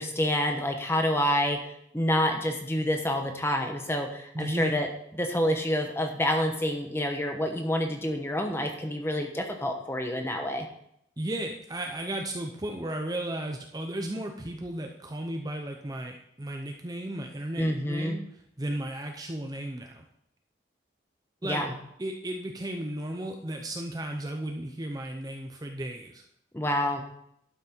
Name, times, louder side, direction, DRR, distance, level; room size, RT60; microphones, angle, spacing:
voice 1, 0.0-4.9 5.2-10.7 17.6-18.2 21.4-21.8 26.5-27.0, left 1 dB, 15° left, 3 dB, 1.1 m, -28 dB
voice 2, 4.3-4.7 11.2-18.2 18.6-20.0 21.4-21.6 22.0-26.2, right 1 dB, 20° right, 3 dB, 0.6 m, -34 dB
12.0 x 6.1 x 4.5 m, 0.74 s
head